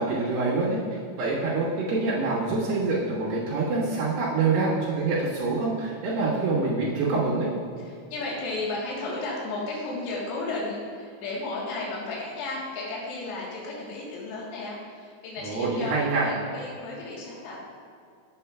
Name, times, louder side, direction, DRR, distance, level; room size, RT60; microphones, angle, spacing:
voice 1, 0.0-7.5 15.4-16.3, right 3 dB, 65° right, -8 dB, 3.0 m, -26 dB
voice 2, 7.8-17.6, left 2 dB, 75° left, -4 dB, 3.2 m, -34 dB
8.5 x 7.4 x 2.3 m, 2.3 s
omnidirectional pair, 5.2 m